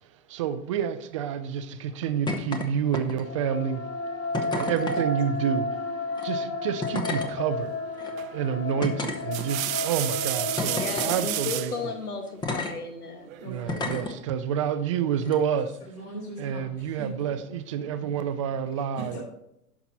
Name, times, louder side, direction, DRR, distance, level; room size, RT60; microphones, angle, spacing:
voice 1, 0.0-11.7 13.5-15.8 16.4-19.2, right 8 dB, 25° right, 10 dB, 0.3 m, -29 dB
sound 1, 2.3-2.7 2.9-3.4 4.3-5.0 6.1-6.2 6.8-7.3 8.0-8.1 8.8-9.7 10.6-11.2 12.4-12.7 13.7-14.1 15.2-15.4, left 3 dB, 10° left, 0.7 m, -31 dB
sound 2, 3.1-12.3, left 2 dB, 30° left, 1.9 m, -33 dB
sound 3, 8.2-8.5 9.1-11.8 13.3-13.9, right 14 dB, 65° right, 0.6 m, -31 dB
voice 2, 10.7-13.3, left 4 dB, 85° left, 6 dB, 1.4 m, -35 dB
voice 3, 13.4-14.0 15.8-18.5 18.9-19.2, right 2 dB, 55° left, -3 dB, 3.6 m, -41 dB
10.5 x 5.9 x 4.0 m, 0.77 s
hypercardioid pair, 120°, 44 cm